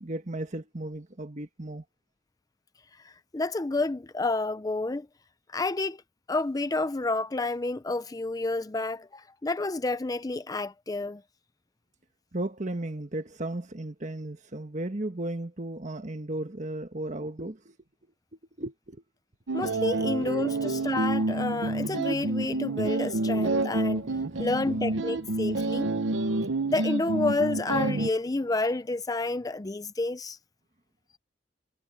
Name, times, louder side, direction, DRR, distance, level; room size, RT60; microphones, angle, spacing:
voice 1, 0.0-1.8 12.3-17.8 18.6-19.0 20.0-20.3 24.0-24.7, right 1 dB, 40° right, 1.5 m, -35 dB
voice 2, 3.0-5.1 5.5-6.0 6.3-11.2 19.5-24.1 24.4-25.9 26.7-30.4, left 2 dB, 20° left, 0.5 m, -30 dB
sound 1, 19.5-28.1, right 2 dB, 90° right, 0.8 m, -28 dB
head